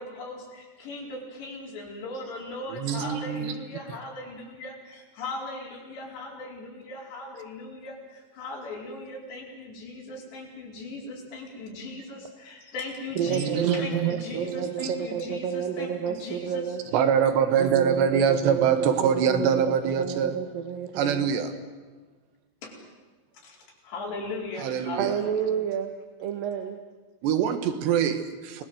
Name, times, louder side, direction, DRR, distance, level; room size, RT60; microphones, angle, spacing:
voice 1, 0.0-16.8 22.6-22.8 23.4-23.6 23.8-25.5, left 2 dB, 90° left, -1 dB, 7.0 m, -38 dB
voice 2, 2.7-3.6 13.3-14.1 14.8-14.9 16.9-20.4 21.0-21.5 24.6-25.2 27.2-28.6, right 8 dB, 90° right, 9 dB, 3.8 m, -24 dB
voice 3, 13.2-16.8 17.6-21.2 25.0-25.9 26.2-26.8, right 8 dB, 65° right, 6 dB, 2.9 m, -30 dB
29.0 x 20.5 x 7.9 m, 1.3 s
omnidirectional pair, 4.8 m